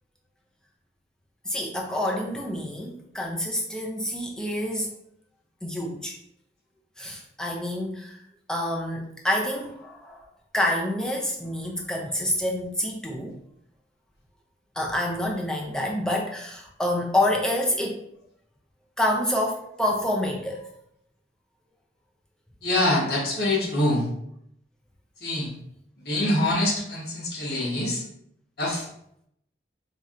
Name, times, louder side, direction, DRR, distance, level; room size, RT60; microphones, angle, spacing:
voice 1, 1.4-4.9 5.6-6.2 7.0-8.2 8.5-10.2 10.5-13.4 14.8-18.0 19.0-20.7, left 1 dB, 5° left, -1 dB, 0.5 m, -27 dB
voice 2, 22.6-24.0 25.2-25.5 26.0-28.0 28.6-28.9, left 1 dB, 60° left, -3 dB, 1.1 m, -24 dB
4.1 x 2.7 x 2.4 m, 0.74 s
head